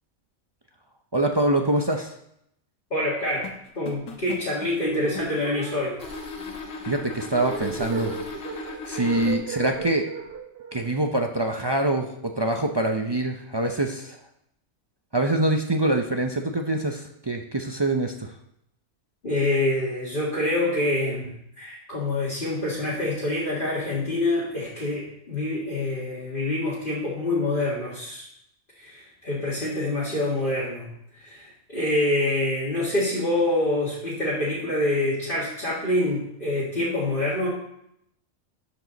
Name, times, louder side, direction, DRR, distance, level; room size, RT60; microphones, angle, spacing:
voice 1, 1.1-2.1 6.8-8.1 8.6-10.0 10.7-14.2 15.1-18.3, right 1 dB, 35° right, 3 dB, 0.4 m, -25 dB
voice 2, 2.9-3.5 3.8-5.9 19.2-28.2 28.8-37.5, left 1 dB, 40° left, -8 dB, 2.1 m, -26 dB
sound 1, 3.4-5.5 6.0-9.3, left 4 dB, 80° left, 1.5 m, -37 dB
sound 2, 4.8-12.0, right 6 dB, 55° right, 0.9 m, -37 dB
12.5 x 5.1 x 4.0 m, 0.77 s
omnidirectional pair, 1.4 m